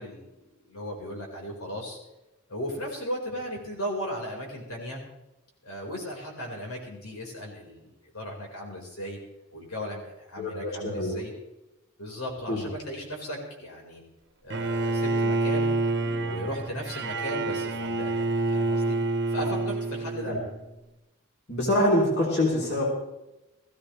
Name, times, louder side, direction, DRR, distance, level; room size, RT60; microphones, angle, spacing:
voice 1, 0.0-2.0 2.5-5.0 5.6-9.2 9.5-11.3 12.0-14.0 14.4-15.7 16.0-19.0 19.3-20.4, equal, 90° left, 0 dB, 4.9 m, -36 dB
voice 2, 10.4-11.2 12.5-12.6 20.3-20.4 21.5-22.8, left 1 dB, 50° left, -2 dB, 3.5 m, -25 dB
Bowed string instrument, 14.5-20.6, right 2 dB, 50° right, 1.1 m, -28 dB
19.0 x 15.5 x 3.3 m, 0.96 s
head